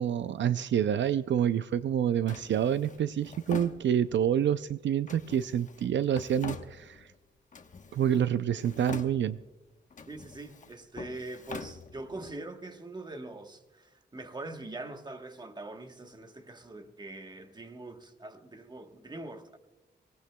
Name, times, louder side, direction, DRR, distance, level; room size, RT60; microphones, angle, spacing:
voice 1, 0.0-7.1 7.9-9.4, right 9 dB, 75° right, 0.4 m, -28 dB
Drawer open or close, 2.3-4.3 5.1-7.2 7.5-8.3 8.6-9.5 9.9-12.3, left 5 dB, 40° left, 1.0 m, -45 dB
voice 2, 10.1-19.6, right 2 dB, 20° right, 1.1 m, -43 dB
24.0 x 18.5 x 2.2 m
wide cardioid pair, 140°, 19 cm